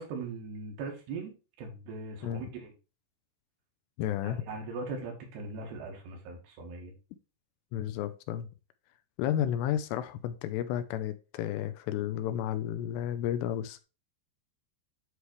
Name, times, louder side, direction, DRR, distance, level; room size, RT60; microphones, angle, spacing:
voice 1, 0.0-2.7 4.2-6.9, right 3 dB, 70° right, 3.6 m, -40 dB
voice 2, 4.0-4.4 7.7-8.5 9.2-13.8, left 11 dB, 80° left, 2.6 m, -32 dB
9.8 x 3.4 x 4.5 m
omnidirectional pair, 5.0 m